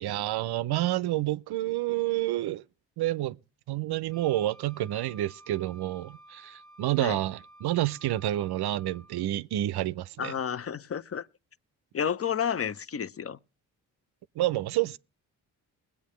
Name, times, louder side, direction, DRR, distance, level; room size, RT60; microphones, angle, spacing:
voice 1, 0.0-2.6 3.0-3.4 3.7-10.3 14.4-15.0, right 15 dB, 60° right, 0.5 m, -29 dB
Wind instrument woodwind instrument, 4.1-9.3, right 1 dB, ahead, 1.7 m, -54 dB
voice 2, 10.2-11.3 11.9-13.4, left 8 dB, 30° left, 0.6 m, -31 dB
21.0 x 8.5 x 3.1 m
hypercardioid pair, 45°, 45 cm